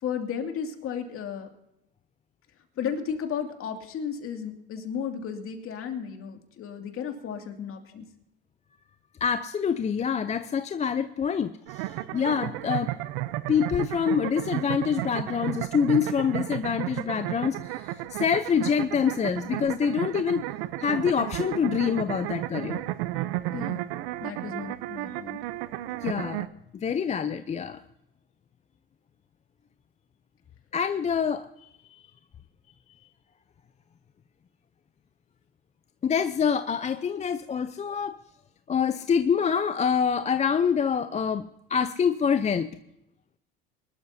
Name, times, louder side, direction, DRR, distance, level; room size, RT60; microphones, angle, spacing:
voice 1, 0.0-1.5 2.8-8.0 23.5-23.8 24.2-25.4, left 7 dB, 50° left, 4 dB, 2.4 m, -34 dB
voice 2, 9.2-12.9 13.5-20.5 20.8-22.8 26.0-26.5 26.7-27.8 30.7-32.0 36.0-38.2 38.7-42.7, left 7 dB, 25° left, 10 dB, 0.5 m, -26 dB
sound 1, 11.7-26.5, right 16 dB, 75° right, 0.8 m, -33 dB
23.0 x 12.5 x 2.7 m, 0.83 s
supercardioid pair, 95°, 29 cm